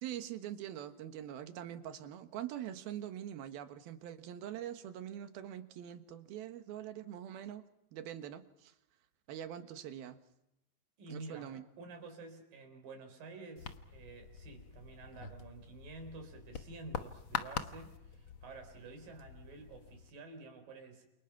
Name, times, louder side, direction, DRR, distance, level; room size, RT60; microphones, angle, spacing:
voice 1, 0.0-7.6 7.9-8.7 9.3-10.2 11.1-11.6, right 11 dB, 90° right, 9 dB, 3.3 m, -44 dB
voice 2, 11.0-21.1, right 3 dB, 70° right, 5 dB, 5.8 m, -50 dB
sound 1, 13.6-20.1, left 7 dB, 70° left, 1.1 m, -45 dB
28.5 x 28.5 x 5.9 m, 0.84 s
omnidirectional pair, 4.2 m